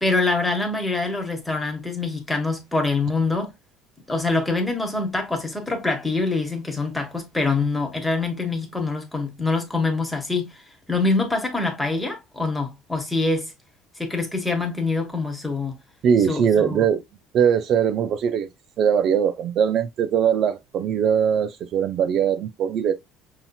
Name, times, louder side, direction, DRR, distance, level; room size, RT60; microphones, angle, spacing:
voice 1, 0.0-3.5 4.1-10.6 10.9-13.5 14.0-15.8 16.3-16.8, left 3 dB, 5° left, 1.1 m, -25 dB
voice 2, 16.0-17.0 17.3-18.5 18.8-22.9, right 8 dB, 45° right, 0.3 m, -21 dB
5.6 x 2.8 x 2.3 m
cardioid pair, 145°, 0 cm